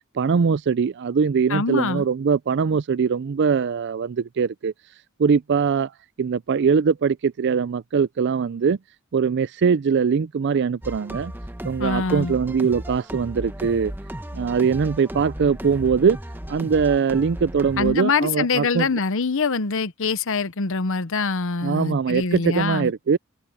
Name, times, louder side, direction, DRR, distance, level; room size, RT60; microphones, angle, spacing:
voice 1, 0.1-4.7 5.2-5.9 6.2-8.8 9.1-11.3 11.6-13.9 14.3-16.2 16.5-18.9 21.6-23.2, right 6 dB, 55° right, 0.4 m, -22 dB
voice 2, 1.5-2.0 11.8-12.4 17.8-22.9, left 4 dB, 60° left, 0.9 m, -24 dB
sound 1, 10.8-18.0, equal, 10° right, 1.4 m, -35 dB
head